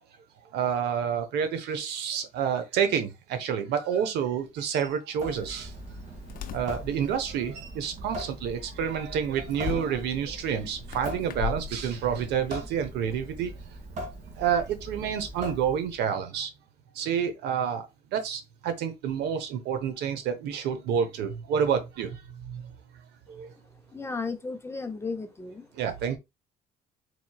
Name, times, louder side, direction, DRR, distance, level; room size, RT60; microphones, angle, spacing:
voice 1, 0.5-5.7 6.5-13.5 14.4-16.5 16.9-17.9 18.1-22.7 23.3-23.5 25.7-26.2, right 8 dB, 80° right, 0.8 m, -29 dB
Water tap faucet / Sink (filling or washing) / Drip, 5.1-16.1, right 1 dB, 45° right, 1.8 m, -41 dB
sound 1, 5.3-12.6, left 9 dB, 55° left, 0.6 m, -41 dB
voice 2, 23.9-25.7, left 4 dB, 15° left, 0.6 m, -34 dB
4.2 x 3.0 x 2.3 m
cardioid pair, 110°, 17 cm